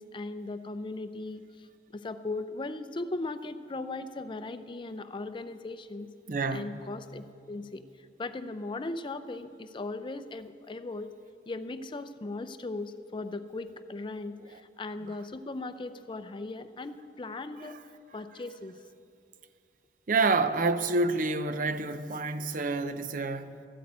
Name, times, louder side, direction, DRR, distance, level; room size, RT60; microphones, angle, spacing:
voice 1, 0.0-6.1 6.5-7.8 8.2-11.1 11.5-17.8 18.1-18.8, left 2 dB, 30° left, 0.5 m, -38 dB
voice 2, 6.3-6.8 15.1-15.2 17.6-17.7 20.1-23.7, right 3 dB, 50° right, 0.6 m, -28 dB
13.5 x 8.4 x 8.6 m
head